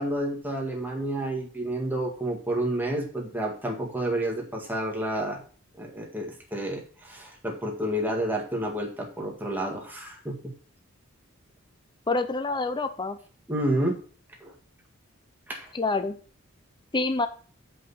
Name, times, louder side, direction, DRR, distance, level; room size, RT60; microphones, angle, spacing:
voice 1, 0.0-5.4 5.8-10.5 13.5-14.0 14.4-14.5 15.5-15.7, right 1 dB, 10° right, 1 dB, 1.8 m, -30 dB
voice 2, 12.1-13.2 15.7-16.2 16.9-17.3, left 3 dB, 20° left, 9 dB, 0.5 m, -27 dB
7.7 x 5.2 x 5.6 m, 0.41 s
head